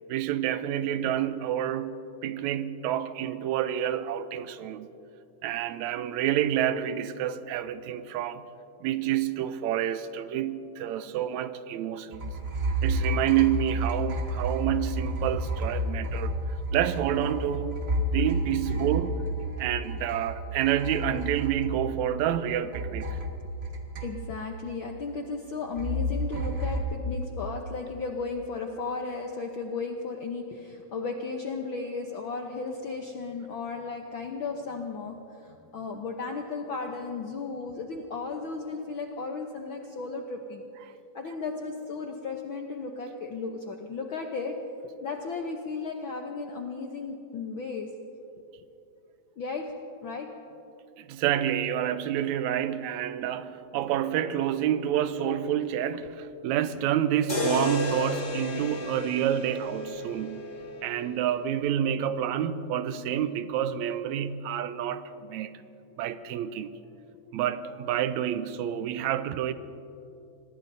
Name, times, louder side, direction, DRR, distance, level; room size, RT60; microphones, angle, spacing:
voice 1, 0.1-5.0 5.4-8.4 8.8-12.4 12.8-16.3 16.7-17.8 18.1-19.2 19.6-23.2 51.0-60.5 60.8-65.6 66.0-66.8 67.3-69.5, right 10 dB, 80° right, 1.9 m, -28 dB
sound 1, 12.1-22.4 22.7-24.6 25.8-26.8, right 1 dB, 65° right, 0.6 m, -31 dB
voice 2, 24.0-35.1 35.4-40.7 41.1-44.5 45.0-47.9 49.4-49.7 50.0-50.3, left 4 dB, 75° left, 1.1 m, -35 dB
sound 2, 57.3-61.4, left 1 dB, 30° left, 0.9 m, -33 dB
25.5 x 20.5 x 2.7 m
omnidirectional pair, 3.4 m